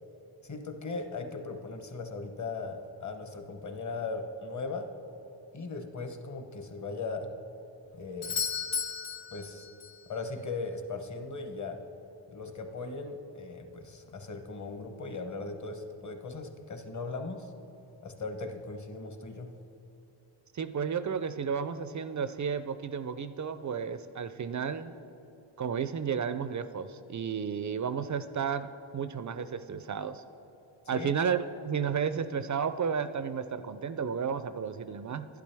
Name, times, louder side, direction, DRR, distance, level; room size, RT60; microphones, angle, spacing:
voice 1, 0.4-4.9 5.5-7.3 7.9-8.4 9.3-9.7 10.1-11.8 12.3-17.5 18.0-19.5 30.9-31.1, left 3 dB, 35° left, 6 dB, 1.0 m, -38 dB
Doorbell, 8.2-10.1 14.1-14.2, left 6 dB, 70° left, 1.4 m, -34 dB
voice 2, 20.5-24.9 25.6-28.7 28.9-30.2 30.9-35.3, right 6 dB, 40° right, 12 dB, 0.4 m, -32 dB
11.5 x 10.5 x 3.4 m, 3.0 s
cardioid pair, 70°, 49 cm